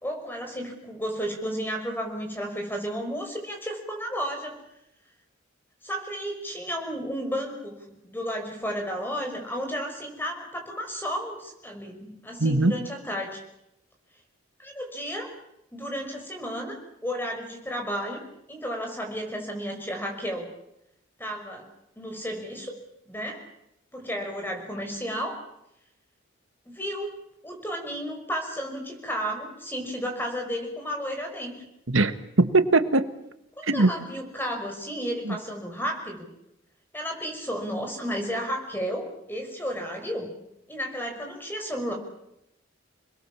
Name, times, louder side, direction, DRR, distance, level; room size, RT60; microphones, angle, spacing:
voice 1, 0.0-4.5 5.8-13.4 14.6-15.3 15.7-16.8 17.0-20.5 21.2-21.6 22.0-22.7 23.0-23.4 23.9-25.4 26.7-27.1 27.4-31.7 33.6-36.3 36.9-40.4 40.7-41.9, equal, 10° left, 3 dB, 5.8 m, -33 dB
voice 2, 12.4-12.8 31.9-33.1 33.6-33.9 35.2-35.3, right 2 dB, 80° right, 10 dB, 1.6 m, -21 dB
29.0 x 21.0 x 7.3 m, 0.83 s
head